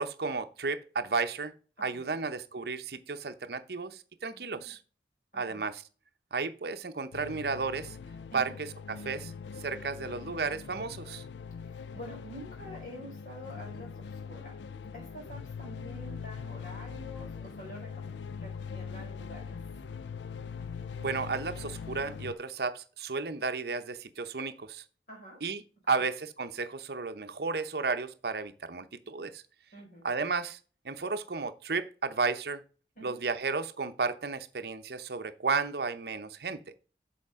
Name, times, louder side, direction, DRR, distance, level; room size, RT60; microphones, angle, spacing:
voice 1, 0.0-1.5 1.8-4.8 5.3-5.8 6.3-8.0 8.3-8.7 9.0-9.3 9.6-11.2 21.0-24.8 25.4-29.4 30.0-30.6 30.8-32.6 33.0-36.6, right 4 dB, 60° right, 0.7 m, -33 dB
voice 2, 1.8-2.2 4.3-4.7 5.3-5.7 8.3-8.6 11.6-14.6 14.9-19.6 25.1-25.4 25.9-26.1 29.7-30.1 32.9-33.2, equal, 50° left, 4.8 m, -48 dB
sound 1, 7.1-22.3, left 6 dB, 80° left, 0.4 m, -42 dB
8.6 x 5.8 x 3.6 m
head